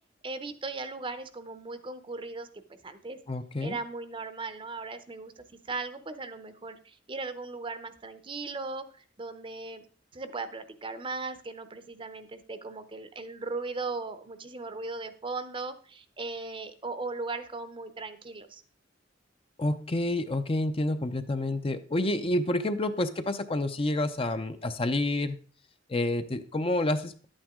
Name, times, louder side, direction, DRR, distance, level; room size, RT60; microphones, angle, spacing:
voice 1, 0.2-3.2 3.6-5.3 5.7-9.8 10.1-18.6, right 3 dB, 25° right, 11 dB, 0.7 m, -38 dB
voice 2, 3.3-3.8 19.6-25.4 25.9-27.3, left 1 dB, 30° left, 9 dB, 0.6 m, -29 dB
11.0 x 8.9 x 3.6 m, 0.40 s
head